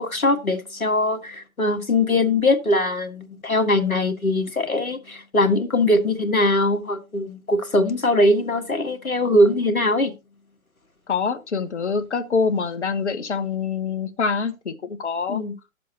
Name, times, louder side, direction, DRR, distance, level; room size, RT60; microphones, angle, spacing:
voice 1, 0.0-10.1 15.3-15.5, left 1 dB, 80° left, 1.8 m, -21 dB
voice 2, 11.1-15.4, left 5 dB, 55° left, 1.3 m, -25 dB
12.0 x 7.5 x 2.9 m
figure-of-eight pair, 130°, 42 cm